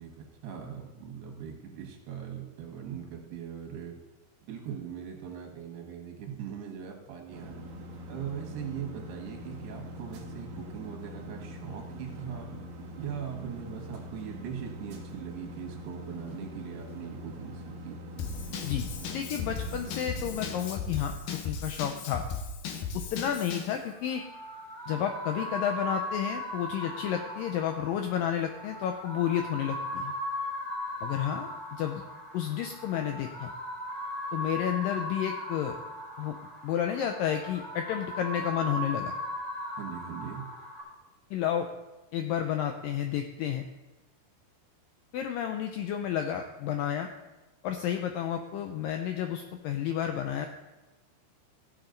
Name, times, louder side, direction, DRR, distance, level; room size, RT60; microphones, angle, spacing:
voice 1, 0.0-4.0 4.4-7.5 8.1-12.5 13.0-18.0 39.8-40.4, right 8 dB, 80° right, 2 dB, 3.5 m, -40 dB
sound 1, 7.3-20.7, equal, 65° right, 2.8 m, -43 dB
Drum kit / Drum, 18.2-23.8, left 5 dB, 70° left, 2.3 m, -36 dB
voice 2, 18.6-22.3 22.9-24.2 24.9-30.1 31.0-32.0 32.3-33.5 34.3-35.8 36.2-36.4 36.6-39.1 41.3-41.7 42.1-43.6 45.1-47.1 47.6-50.5, left 9 dB, 85° left, 5 dB, 2.0 m, -31 dB
sound 2, 23.8-40.8, left 1 dB, 10° right, 3.3 m, -38 dB
16.0 x 7.2 x 3.9 m, 1.1 s
omnidirectional pair, 4.7 m